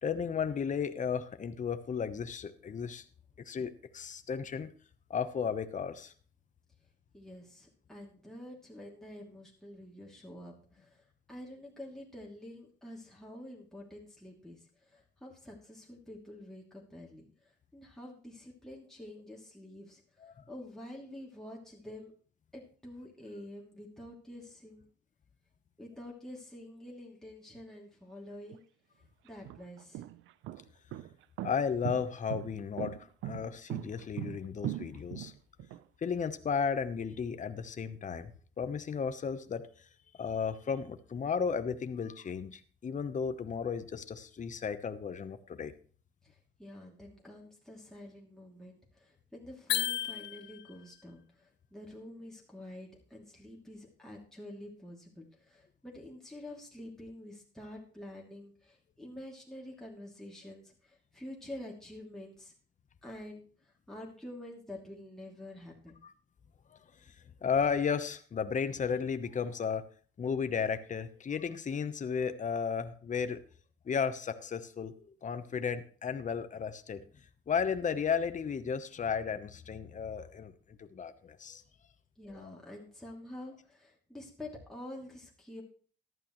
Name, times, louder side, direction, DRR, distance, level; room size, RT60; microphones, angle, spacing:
voice 1, 0.0-3.0 3.4-4.7 5.1-6.1 20.2-20.4 31.4-33.0 33.2-35.3 36.0-38.3 38.6-39.7 40.2-45.7 66.0-66.1 67.4-69.9 70.2-73.4 73.8-77.0 77.5-80.5 80.8-81.6 82.3-82.6, left 6 dB, 40° left, 10 dB, 1.0 m, -34 dB
voice 2, 7.1-11.0 11.3-17.2 17.7-20.0 20.5-22.1 22.5-24.9 25.8-28.6 29.2-30.0 46.3-62.5 63.0-63.4 63.9-66.0 82.2-85.6, left 1 dB, ahead, -3 dB, 2.7 m, -48 dB
sound 1, 28.5-28.6 29.3-35.8, right 13 dB, 85° right, 0.6 m, -39 dB
sound 2, 49.7-50.8, left 11 dB, 60° left, 0.5 m, -33 dB
14.5 x 11.0 x 3.1 m, 0.44 s
cardioid pair, 90°, 20 cm